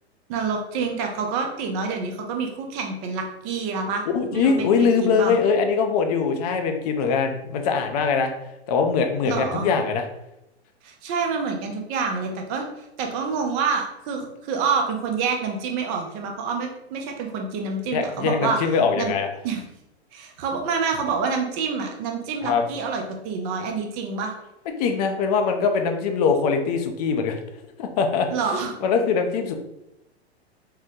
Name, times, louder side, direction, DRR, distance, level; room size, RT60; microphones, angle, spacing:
voice 1, 0.3-4.1 4.3-5.4 9.2-9.7 10.8-12.6 13.0-18.6 18.9-19.1 19.4-19.6 20.1-24.3 28.3-29.0, right 5 dB, 25° right, 3 dB, 0.4 m, -27 dB
voice 2, 4.1-8.3 8.7-10.1 17.9-19.3 22.4-22.6 24.8-27.4 27.8-28.3 28.8-29.5, left 5 dB, 35° left, 5 dB, 0.4 m, -22 dB
3.7 x 2.0 x 2.7 m, 0.87 s
hypercardioid pair, 125°, 33 cm